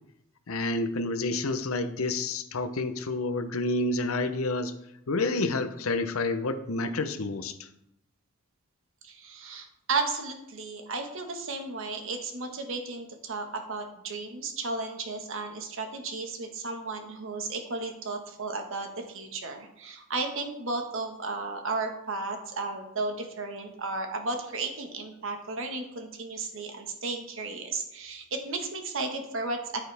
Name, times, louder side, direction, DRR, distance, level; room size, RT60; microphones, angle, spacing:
voice 1, 0.5-4.7 5.1-7.7, left 2 dB, 80° left, 10 dB, 0.8 m, -29 dB
voice 2, 9.0-29.8, right 3 dB, 65° right, 4 dB, 1.5 m, -34 dB
10.5 x 8.7 x 3.4 m, 0.83 s
head